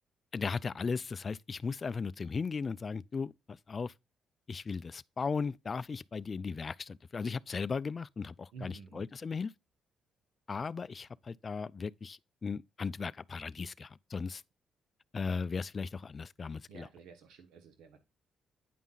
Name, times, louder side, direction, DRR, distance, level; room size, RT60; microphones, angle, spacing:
voice 1, 0.3-3.9 4.5-9.5 10.5-14.4 15.1-16.9, left 5 dB, 35° left, 0.3 m, -37 dB
voice 2, 8.5-9.0 16.5-18.0, right 5 dB, 85° right, 1.1 m, -51 dB
9.2 x 5.5 x 2.4 m
cardioid pair, 90°, 0 cm